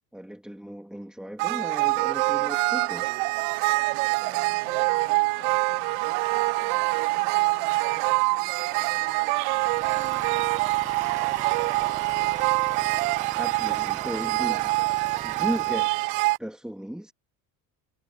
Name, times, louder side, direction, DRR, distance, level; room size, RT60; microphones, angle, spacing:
voice 1, 0.1-3.2 13.4-14.7 15.2-15.9 16.4-17.1, equal, ahead, 2.3 m, -35 dB
sound 1, 1.4-16.4, right 26 dB, 80° right, 0.6 m, -25 dB
voice 2, 4.2-9.3 9.6-10.5, left 7 dB, 30° left, 6.8 m, -52 dB
sound 2, 4.8-13.2, left 17 dB, 65° left, 3.2 m, -50 dB
Idling, 9.5-16.0, right 6 dB, 20° right, 0.8 m, -42 dB
supercardioid pair, 120°, 39 cm